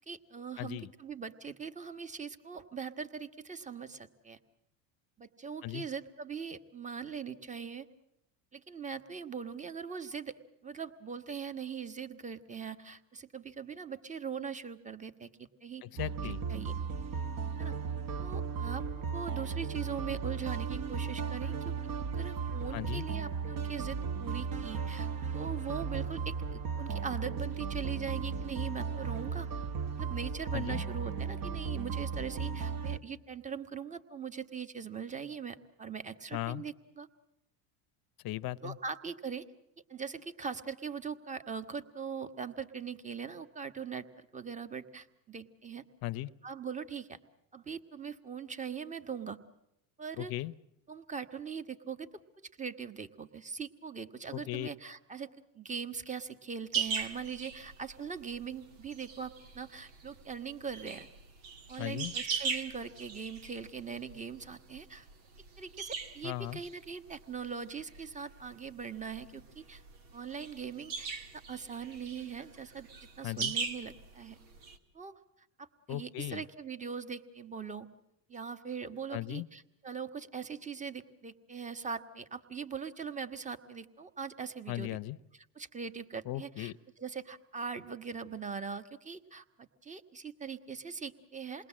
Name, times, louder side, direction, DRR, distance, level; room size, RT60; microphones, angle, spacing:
voice 1, 0.1-4.4 5.2-7.9 8.5-10.3 10.6-15.8 16.5-16.7 17.6-17.7 18.2-21.5 22.0-29.5 29.9-37.1 38.6-39.4 39.9-45.8 46.4-47.2 47.5-49.4 50.0-50.3 50.9-52.1 52.4-55.3 55.5-61.1 61.7-65.1 65.6-69.8 70.1-71.1 71.5-72.9 73.2-74.4 74.9-75.2 75.6-77.9 78.3-85.0 85.5-86.7 87.0-91.7, right 6 dB, 15° right, 11 dB, 1.3 m, -41 dB
voice 2, 0.6-0.9 5.6-5.9 15.8-16.5 22.7-23.1 30.5-30.8 36.3-36.6 38.2-38.8 46.0-46.3 50.2-50.5 54.3-54.7 61.8-62.1 66.2-66.6 73.2-73.5 75.9-76.4 79.1-79.5 84.7-85.2 86.2-86.8, left 15 dB, 45° left, 17 dB, 0.8 m, -37 dB
sound 1, 16.0-33.0, right 6 dB, 40° right, 1.7 m, -36 dB
sound 2, 56.7-74.8, right 5 dB, 85° right, 2.1 m, -40 dB
28.0 x 20.5 x 7.5 m, 0.83 s
hypercardioid pair, 90°, 50 cm